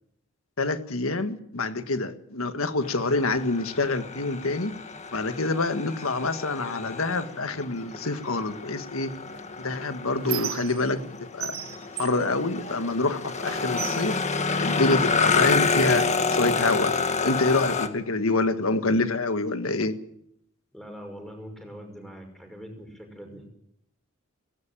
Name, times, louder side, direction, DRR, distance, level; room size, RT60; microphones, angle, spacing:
voice 1, 0.6-4.7 5.1-9.1 9.6-11.6 12.0-14.2 14.6-16.9 17.2-19.9, left 3 dB, 75° left, 9 dB, 1.7 m, -26 dB
sound 1, 2.8-17.9, left 4 dB, 35° left, 1.6 m, -29 dB
Squeak, 9.3-11.1 11.4-13.1 13.4-15.2 15.9-16.1 16.4-17.4, right 9 dB, 85° right, 1.3 m, -37 dB
voice 2, 20.7-23.5, equal, ahead, 4 dB, 5.7 m, -42 dB
18.0 x 17.5 x 8.9 m, 0.73 s
head